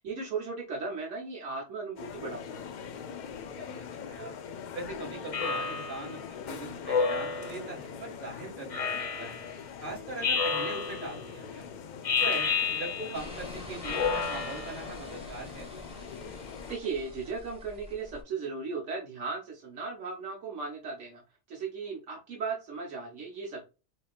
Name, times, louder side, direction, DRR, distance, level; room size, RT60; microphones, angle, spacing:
voice 1, 0.0-2.6 16.7-21.2 21.5-23.7, right 4 dB, 80° right, -1 dB, 1.3 m, -36 dB
sound 1, 2.0-16.8, left 7 dB, 60° left, 0.5 m, -43 dB
voice 2, 3.6-4.3 4.7-9.4 9.8-11.8 12.2-15.7, right 3 dB, 45° right, -1 dB, 1.9 m, -41 dB
Speech synthesizer, 5.3-6.1 6.9-7.7 8.7-9.5 10.2-11.2 12.0-13.3 13.8-14.9, left 5 dB, 35° left, 0.7 m, -30 dB
sound 2, 13.1-18.2, left 1 dB, 5° right, 1.3 m, -46 dB
4.9 x 2.9 x 2.4 m, 0.29 s
omnidirectional pair, 1.2 m